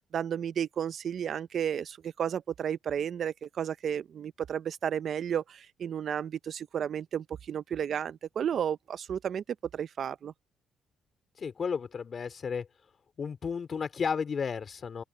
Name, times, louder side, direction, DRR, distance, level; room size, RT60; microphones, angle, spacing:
voice 1, 0.1-9.4 9.7-10.3, right 8 dB, 60° right, 0.5 m, -32 dB
voice 2, 11.4-12.7 13.2-15.0, left 6 dB, 45° left, 3.8 m, -33 dB
open air
cardioid pair, 90°, 0 cm